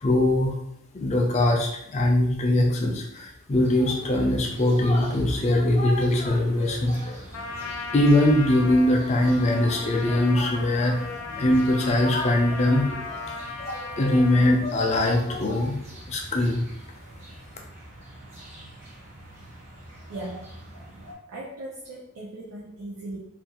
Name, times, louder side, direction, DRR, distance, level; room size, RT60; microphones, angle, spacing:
voice 1, 0.0-0.6 0.9-7.3 7.9-15.8 16.1-16.6, left 1 dB, 30° left, 1 dB, 0.4 m, -22 dB
sound 1, 3.5-21.1, right 1 dB, 30° right, 0.6 m, -44 dB
Trumpet, 7.3-14.6, left 3 dB, 90° left, 0.4 m, -37 dB
voice 2, 20.1-20.6 21.3-23.2, right 2 dB, 85° right, -4 dB, 0.5 m, -38 dB
2.4 x 2.3 x 2.8 m, 0.75 s
head